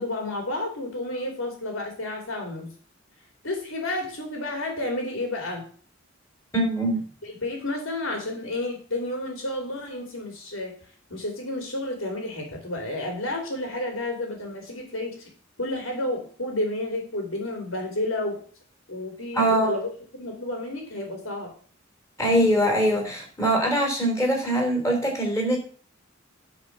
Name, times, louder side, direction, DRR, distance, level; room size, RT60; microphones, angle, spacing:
voice 1, 0.0-2.7 3.4-5.6 7.2-10.7 11.1-15.2 15.6-18.4 18.9-19.9 20.2-21.5, left 1 dB, 90° left, 1 dB, 3.1 m, -31 dB
voice 2, 6.5-7.0 19.3-19.7 22.2-25.6, right 1 dB, 15° left, 0 dB, 3.6 m, -22 dB
10.5 x 4.9 x 7.3 m, 0.44 s
head